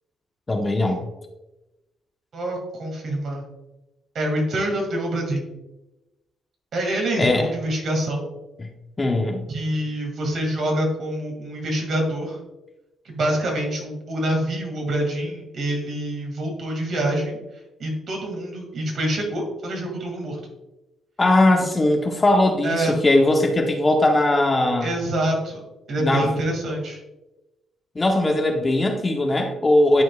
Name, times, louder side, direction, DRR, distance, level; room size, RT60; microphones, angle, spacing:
voice 1, 0.5-1.0 7.2-7.5 8.6-8.7 9.0-9.4 21.2-24.9 26.0-26.3 27.9-30.0, left 1 dB, 25° left, 3 dB, 0.9 m, -19 dB
voice 2, 2.3-3.4 4.1-5.5 6.7-8.3 9.5-12.4 13.1-17.4 17.8-20.4 21.5-21.6 22.6-22.9 24.8-27.0, right 1 dB, 60° right, 1 dB, 2.2 m, -26 dB
10.5 x 4.5 x 2.3 m, 1.0 s
cardioid pair, 90°, 0 cm